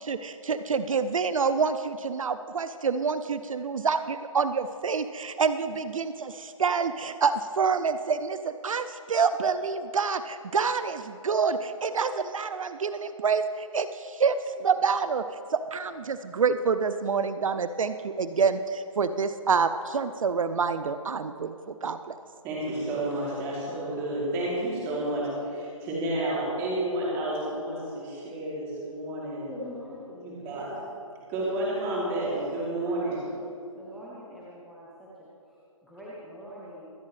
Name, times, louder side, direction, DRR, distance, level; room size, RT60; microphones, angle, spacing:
voice 1, 0.0-15.2 15.5-22.2, right 5 dB, 70° right, 11 dB, 0.5 m, -27 dB
voice 2, 22.4-29.5 30.1-30.7 31.3-33.2, right 1 dB, 15° right, -6 dB, 2.9 m, -30 dB
voice 3, 29.5-30.0 30.4-30.8 31.9-33.3 33.7-36.9, equal, ahead, -8 dB, 0.7 m, -44 dB
24.5 x 8.3 x 3.2 m, 2.6 s
hypercardioid pair, 160°, 18 cm